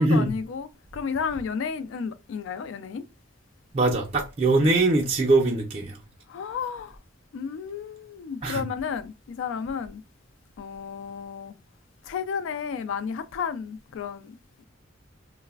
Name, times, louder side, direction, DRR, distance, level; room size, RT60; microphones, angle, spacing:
voice 1, 0.0-3.0 6.3-7.0 7.3-10.0 10.6-11.5 12.0-14.4, left 6 dB, 80° left, 0.3 m, -32 dB
voice 2, 3.7-6.0 8.4-8.6, right 2 dB, 30° right, 0.4 m, -22 dB
3.1 x 2.0 x 2.3 m
head